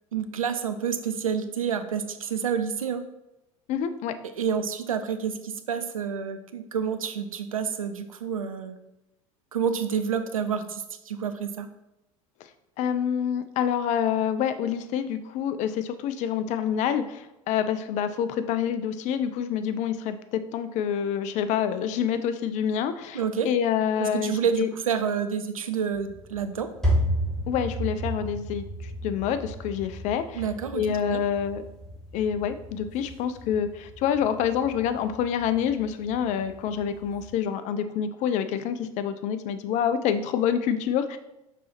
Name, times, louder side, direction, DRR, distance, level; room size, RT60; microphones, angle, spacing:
voice 1, 0.1-3.0 4.4-8.8 9.5-11.7 23.1-23.5 24.0-26.7 30.4-31.2, right 7 dB, 75° right, 9 dB, 0.5 m, -29 dB
voice 2, 3.7-4.2 12.8-24.7 27.5-30.4 30.7-31.6 32.1-41.2, left 8 dB, 40° left, 11 dB, 0.5 m, -27 dB
sound 1, 25.9-37.3, equal, 5° left, 1.8 m, -33 dB
5.5 x 4.1 x 4.2 m, 0.90 s
figure-of-eight pair, 75°, 18 cm